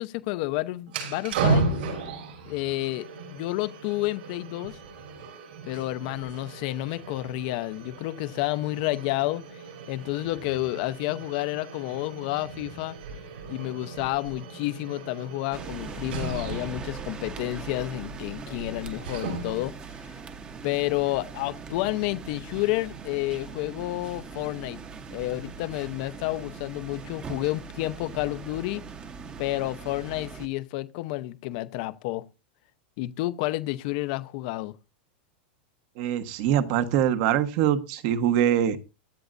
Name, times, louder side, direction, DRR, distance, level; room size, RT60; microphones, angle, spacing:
voice 1, 0.0-2.1 2.5-4.8 5.7-13.0 13.5-20.1 20.6-24.8 25.1-28.8 29.4-32.3 33.0-34.7, left 18 dB, 50° left, 0.8 m, -30 dB
sound 1, 0.9-19.8, right 4 dB, 75° right, 6.8 m, -35 dB
sound 2, 15.5-30.5, right 5 dB, 20° right, 1.0 m, -41 dB
voice 2, 36.0-38.8, right 10 dB, 45° right, 1.2 m, -23 dB
16.5 x 11.5 x 2.6 m
supercardioid pair, 160°, 6 cm